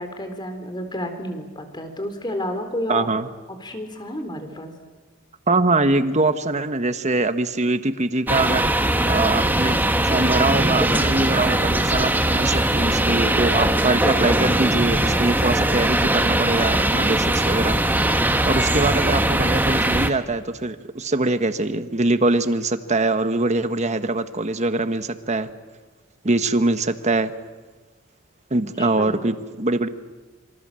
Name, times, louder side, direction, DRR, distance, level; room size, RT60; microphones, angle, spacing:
voice 1, 0.0-3.1 3.6-4.7 28.5-29.2, left 1 dB, 20° left, 7 dB, 3.7 m, -31 dB
voice 2, 2.9-3.3 5.5-8.7 9.1-9.8 10.1-17.8 18.5-25.5 26.2-27.3 28.5-29.9, right 2 dB, 35° right, 10 dB, 1.3 m, -23 dB
sound 1, 8.3-20.1, right 1 dB, 10° right, 1.4 m, -20 dB
27.0 x 25.5 x 7.7 m, 1.3 s
head